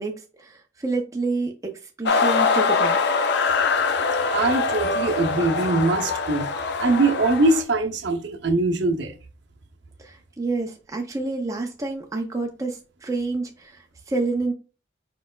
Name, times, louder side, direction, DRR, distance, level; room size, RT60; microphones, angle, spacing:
voice 1, 0.0-3.0 10.0-14.5, right 3 dB, 15° right, 0.5 m, -28 dB
sound 1, 2.1-7.6, left 4 dB, 55° left, 0.4 m, -23 dB
voice 2, 4.3-6.5 6.8-9.2, right 2 dB, 60° right, 0.7 m, -22 dB
4.6 x 4.3 x 2.3 m
head